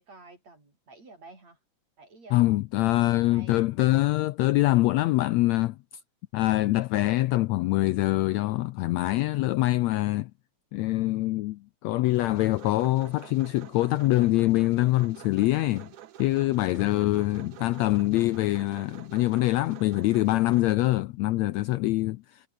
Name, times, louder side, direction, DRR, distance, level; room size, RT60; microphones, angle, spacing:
voice 1, 0.0-1.6 2.0-2.6 2.9-3.6 17.3-17.5, right 3 dB, 55° right, 9.4 m, -51 dB
voice 2, 2.3-5.8 6.3-10.3 10.7-15.9 16.2-22.5, left 18 dB, 80° left, 1.6 m, -24 dB
sound 1, 12.1-20.8, right 12 dB, 75° right, 2.8 m, -48 dB
omnidirectional pair, 3.6 m